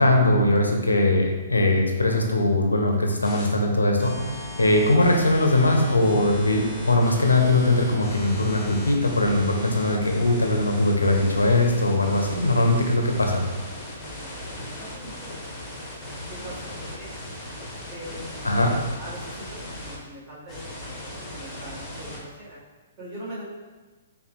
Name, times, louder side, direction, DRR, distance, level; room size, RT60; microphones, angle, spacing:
voice 1, 0.0-13.4 18.4-18.7, left 2 dB, 80° left, 2 dB, 0.5 m, -21 dB
sound 1, 3.2-3.5 4.0-20.0 20.5-22.2, left 1 dB, 10° left, 0.9 m, -37 dB
voice 2, 13.9-15.3 16.3-17.1 17.9-18.4 19.0-19.5 19.8-20.6 21.3-22.6 23.0-23.4, right 1 dB, 35° right, -7 dB, 1.4 m, -41 dB
5.3 x 2.2 x 3.0 m, 1.3 s
figure-of-eight pair, 120°, 0 cm